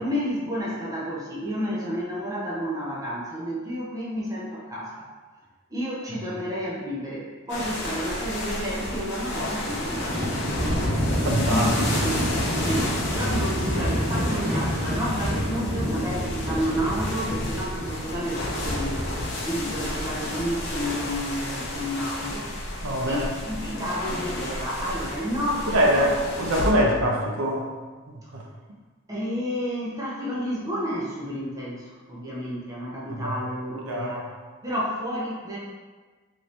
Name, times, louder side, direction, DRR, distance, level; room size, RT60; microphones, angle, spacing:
voice 1, 0.0-5.1 5.7-10.8 11.5-12.2 12.6-19.1 19.4-22.8 23.1-26.4 29.1-34.3 34.6-35.6, equal, 15° right, -6 dB, 0.5 m, -31 dB
sound 1, 7.5-26.7, left 1 dB, 55° left, 0.6 m, -31 dB
Livestock farm animals working animals, 9.3-18.3, equal, 40° right, 1.2 m, -28 dB
voice 2, 11.2-12.1 22.8-23.3 25.7-27.7 28.3-28.4 33.2-33.3 33.9-34.1, equal, 75° right, -1 dB, 0.5 m, -23 dB
2.9 x 2.6 x 3.2 m, 1.4 s
head